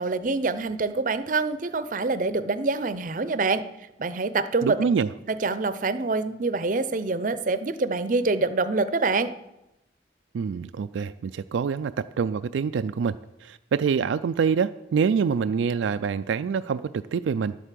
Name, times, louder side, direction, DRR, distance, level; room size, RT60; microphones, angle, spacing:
voice 1, 0.0-3.6 4.0-4.8 5.3-9.3, right 3 dB, 45° right, 13 dB, 0.6 m, -25 dB
voice 2, 4.6-5.1 10.3-17.6, right 6 dB, 90° right, 12 dB, 0.3 m, -26 dB
11.0 x 8.0 x 7.6 m, 0.93 s
head